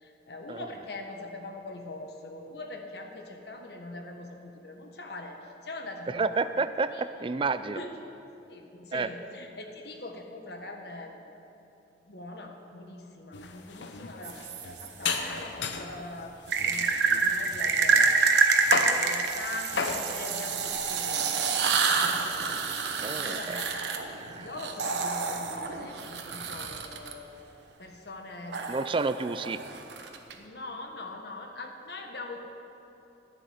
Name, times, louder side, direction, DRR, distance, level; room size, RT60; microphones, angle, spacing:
voice 1, 0.0-6.6 6.9-7.0 7.7-7.9 8.5-11.1 12.1-16.3 16.6-18.2 19.0-21.4 22.0-22.7 23.2-23.9 24.4-27.3 27.8-28.6 30.4-32.4, left 2 dB, 65° left, 3 dB, 1.4 m, -42 dB
voice 2, 6.1-7.8 8.9-9.1 23.0-23.6 24.2-24.5 28.7-29.6, right 4 dB, 30° right, 12 dB, 0.4 m, -30 dB
sound 1, 13.3-16.0 16.5-18.2 18.6-19.0 19.7-20.0, left 4 dB, 90° left, 0.9 m, -33 dB
sound 2, 14.2-15.2 16.5-27.1 28.5-30.3, right 5 dB, 80° right, 1.0 m, -27 dB
11.0 x 6.7 x 9.5 m, 2.9 s
head